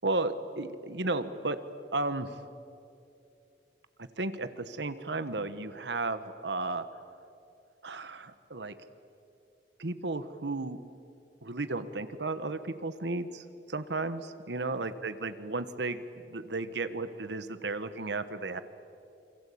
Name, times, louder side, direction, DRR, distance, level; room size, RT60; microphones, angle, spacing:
voice 1, 0.0-1.6 1.9-2.3 4.0-6.9 7.8-8.7 9.8-10.8 11.4-16.0 16.3-18.6, right 3 dB, 80° right, 11 dB, 1.3 m, -34 dB
28.5 x 23.5 x 8.6 m, 2.6 s
head